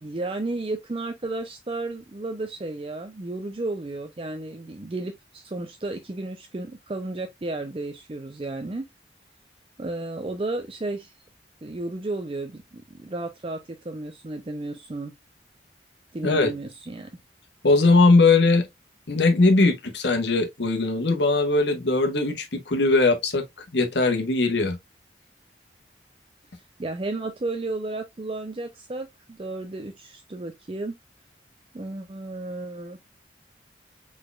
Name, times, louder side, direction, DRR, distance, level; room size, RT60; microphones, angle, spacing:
voice 1, 0.0-8.8 9.8-11.1 11.6-15.1 16.1-17.1 26.8-31.0 31.7-33.0, right 2 dB, 30° right, 0.5 m, -33 dB
voice 2, 17.6-18.7 19.1-23.4 23.7-24.8, left 3 dB, 75° left, 1.2 m, -20 dB
4.8 x 4.1 x 2.3 m
head